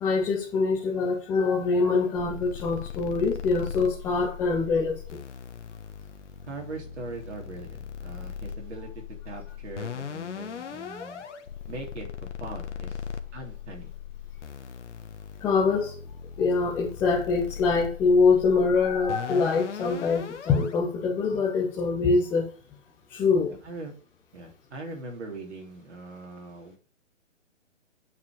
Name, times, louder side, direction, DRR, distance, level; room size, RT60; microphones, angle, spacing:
voice 1, 0.0-5.0 10.6-10.7 15.4-15.9 16.4-22.5 23.1-23.5, left 4 dB, 5° left, -4 dB, 0.6 m, -24 dB
sound 1, 2.2-20.7, left 7 dB, 65° left, 1.4 m, -39 dB
voice 2, 6.4-11.3 11.7-12.1 12.4-13.9 23.5-23.9 24.3-26.8, right 3 dB, 60° right, 1 dB, 3.5 m, -41 dB
9.6 x 5.8 x 6.4 m, 0.40 s
hypercardioid pair, 150°, 38 cm